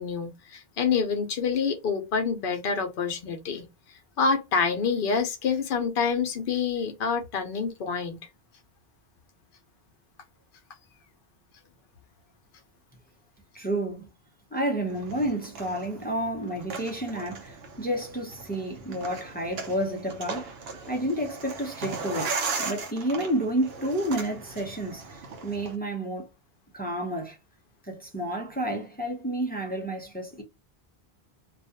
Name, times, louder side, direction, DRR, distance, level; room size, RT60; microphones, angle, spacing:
voice 1, 0.0-3.7 4.2-8.2, left 5 dB, 65° left, 0.8 m, -27 dB
voice 2, 13.5-14.1 14.5-20.5 20.9-26.3 26.7-27.4 27.8-30.4, right 1 dB, 10° left, 0.5 m, -30 dB
sound 1, 14.9-25.8, right 4 dB, 75° right, 0.8 m, -37 dB
2.4 x 2.2 x 2.7 m
omnidirectional pair, 1.0 m